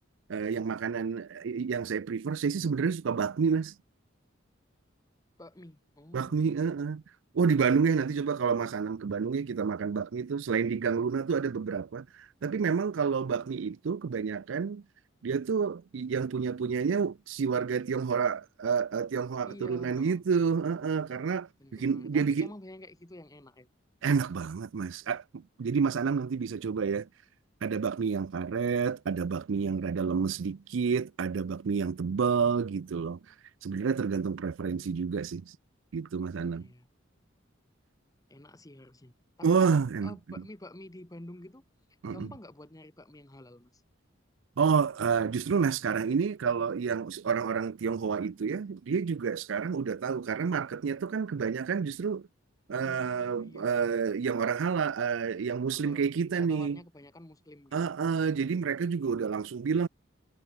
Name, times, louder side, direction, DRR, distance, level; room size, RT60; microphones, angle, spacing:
voice 1, 0.3-3.7 6.1-7.0 7.3-14.8 15.2-22.5 24.0-27.1 27.6-33.2 33.6-35.4 35.9-36.7 39.4-40.1 42.0-42.3 44.6-52.3 52.7-56.8 57.7-59.9, right 6 dB, 70° right, 0.4 m, -29 dB
voice 2, 5.4-6.5 7.9-8.2 19.5-20.2 21.6-23.7 36.5-36.9 38.3-41.6 42.1-43.8 52.7-53.9 55.7-57.9, left 1 dB, 20° left, 1.3 m, -49 dB
head